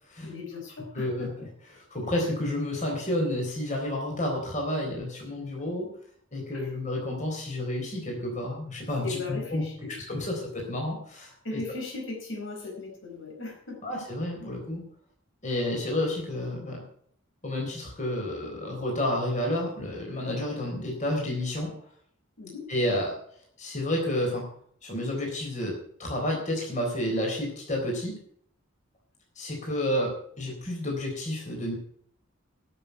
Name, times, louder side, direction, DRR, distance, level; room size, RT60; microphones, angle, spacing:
voice 1, 0.2-1.5 6.5-6.7 9.0-9.9 11.4-13.8 14.4-14.5 22.4-22.7, left 3 dB, 70° left, 1 dB, 4.5 m, -37 dB
voice 2, 0.9-1.3 1.7-5.9 6.3-9.6 10.1-11.6 13.8-14.8 15.4-16.8 17.4-21.7 22.7-23.1 23.6-24.5 24.8-25.7 26.0-28.2 29.4-31.7, left 1 dB, 35° left, 0 dB, 3.9 m, -30 dB
12.0 x 6.8 x 9.2 m, 0.63 s
head